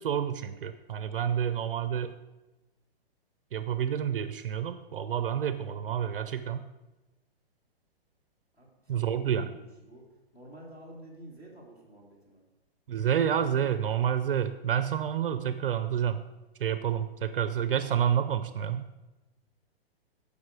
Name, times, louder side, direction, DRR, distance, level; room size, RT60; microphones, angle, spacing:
voice 1, 0.0-2.1 3.5-6.6 8.9-9.5 12.9-16.2 16.6-19.0, right 9 dB, 60° right, 11 dB, 0.6 m, -29 dB
voice 2, 8.5-10.0 10.3-12.4, right 1 dB, 10° left, -5 dB, 2.1 m, -50 dB
14.0 x 5.2 x 4.8 m, 1.1 s
hypercardioid pair, 170°, 31 cm